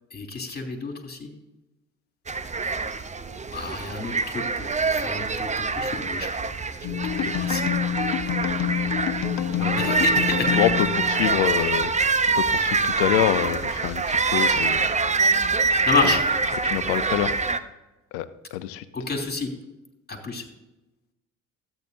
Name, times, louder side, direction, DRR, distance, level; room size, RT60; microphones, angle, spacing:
voice 1, 0.1-1.3 3.5-6.5 6.9-7.7 9.8-10.5 15.9-16.2 18.9-19.5 20.1-20.4, left 4 dB, 25° left, 2 dB, 2.9 m, -29 dB
sound 1, 2.3-17.6, right 4 dB, 20° right, 0.7 m, -25 dB
sound 2, 6.8-11.7, left 10 dB, 55° left, 1.0 m, -28 dB
voice 2, 9.6-10.0 10.5-11.9 12.4-14.9 16.0-16.1 16.6-17.3 18.1-18.3 18.5-18.8, left 13 dB, 80° left, 13 dB, 0.8 m, -26 dB
13.5 x 9.0 x 2.7 m, 1.0 s
hypercardioid pair, 65°, 39 cm